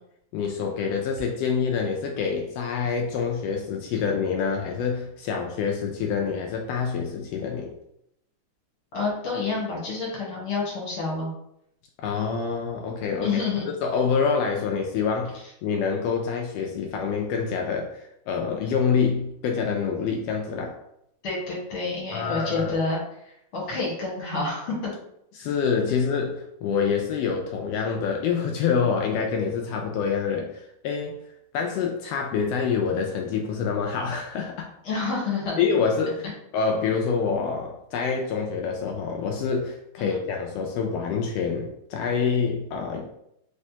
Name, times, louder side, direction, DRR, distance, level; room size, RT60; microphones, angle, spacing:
voice 1, 0.3-7.7 12.0-20.8 22.1-22.7 25.3-31.2 31.5-34.7 35.6-36.2 36.5-43.1, left 6 dB, 90° left, 1 dB, 1.4 m, -26 dB
voice 2, 8.9-11.3 13.2-13.7 21.2-23.0 23.2-24.9 34.8-35.6 40.0-40.2, left 4 dB, 55° left, -4 dB, 1.7 m, -28 dB
4.2 x 3.2 x 2.8 m, 0.77 s
omnidirectional pair, 3.3 m